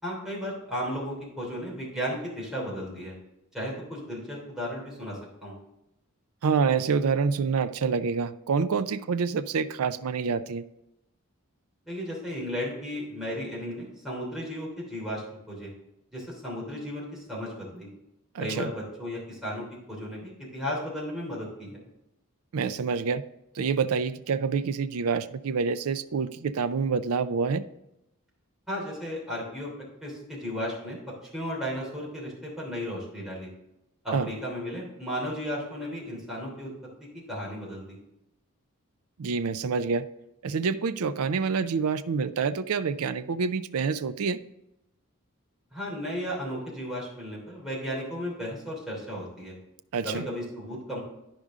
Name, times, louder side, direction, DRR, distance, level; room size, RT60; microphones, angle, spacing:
voice 1, 0.0-3.1 3.5-5.6 11.9-15.7 16.1-17.9 18.4-21.8 28.7-29.7 30.0-31.0 31.3-33.5 34.0-36.7 37.3-38.0 45.7-49.6 50.0-51.0, equal, ahead, -5 dB, 3.0 m, -34 dB
voice 2, 6.4-10.6 18.3-18.7 22.5-23.2 23.5-27.6 34.1-34.3 39.2-40.1 40.4-44.4 49.9-50.3, right 5 dB, 85° right, 13 dB, 0.5 m, -27 dB
11.5 x 5.1 x 3.6 m, 0.87 s
head